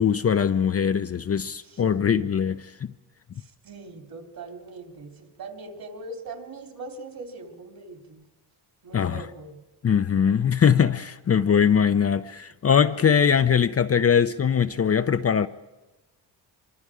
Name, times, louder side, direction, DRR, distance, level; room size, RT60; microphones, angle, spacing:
voice 1, 0.0-2.9 8.9-9.2 9.8-15.5, left 7 dB, 35° left, 0.6 m, -21 dB
voice 2, 3.4-8.2 8.8-9.6, right 3 dB, 55° right, 3.4 m, -41 dB
24.5 x 24.0 x 5.0 m
cardioid pair, 95°, 42 cm